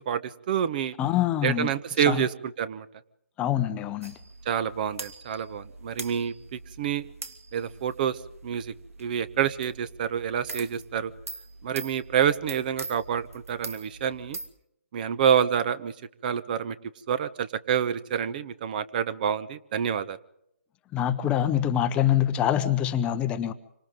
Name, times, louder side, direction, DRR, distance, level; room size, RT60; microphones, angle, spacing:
voice 1, 0.1-0.9 1.4-2.9 4.4-7.1 7.5-8.7 9.0-11.1 11.6-14.4 14.9-15.9 16.2-16.8 17.1-20.2, right 8 dB, 35° right, 15 dB, 1.1 m, -27 dB
voice 2, 1.0-1.7 2.1-2.2 3.4-4.1 20.9-23.5, left 11 dB, 15° left, 10 dB, 0.9 m, -25 dB
sound 1, 4.0-14.5, right 3 dB, 75° right, 2.8 m, -43 dB
27.0 x 25.0 x 3.8 m, 0.78 s
figure-of-eight pair, 150°, 8 cm